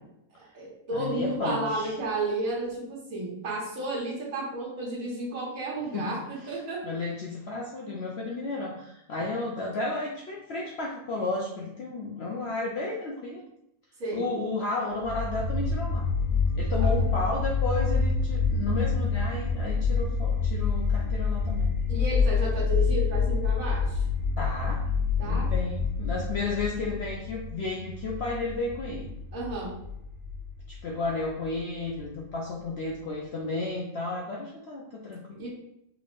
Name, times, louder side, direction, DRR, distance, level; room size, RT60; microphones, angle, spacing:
voice 1, 0.4-6.8 14.0-14.3 16.8-16.9 21.9-24.0 25.2-25.5 29.3-29.8 35.4-35.5, right 2 dB, 60° right, -5 dB, 1.6 m, -32 dB
voice 2, 0.9-2.0 5.9-6.2 6.4-6.5 6.8-13.4 14.1-16.1 16.6-21.7 24.4-24.8 25.2-29.1 30.7-35.5, left 3 dB, 75° left, -2 dB, 0.6 m, -33 dB
sound 1, 15.0-32.0, left 5 dB, 30° right, 1.3 m, -27 dB
3.6 x 3.4 x 2.5 m, 0.81 s
omnidirectional pair, 1.7 m